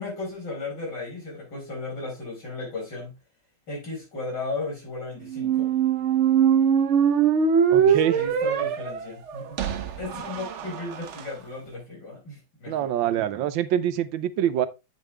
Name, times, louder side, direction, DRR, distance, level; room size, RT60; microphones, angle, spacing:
voice 1, 0.0-3.2 3.7-5.7 7.8-12.9, left 3 dB, 65° left, 5.4 m, -35 dB
sound 1, 5.3-11.2, right 7 dB, 70° right, 0.7 m, -22 dB
voice 2, 7.7-8.2 12.7-14.7, right 11 dB, 85° right, 1.5 m, -25 dB
8.4 x 5.4 x 3.3 m
omnidirectional pair, 2.1 m